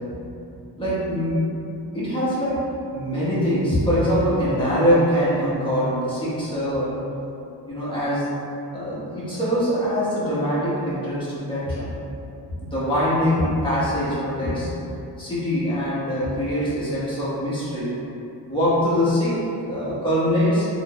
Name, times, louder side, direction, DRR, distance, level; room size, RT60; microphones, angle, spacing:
voice 1, 0.8-1.5 1.9-2.6 2.9-7.0 7.7-8.3 8.7-11.9 12.5-14.7 15.2-18.0 18.5-20.7, equal, 10° left, -11 dB, 1.4 m, -23 dB
3.6 x 2.8 x 2.4 m, 2.7 s
cardioid pair, 75°, 42 cm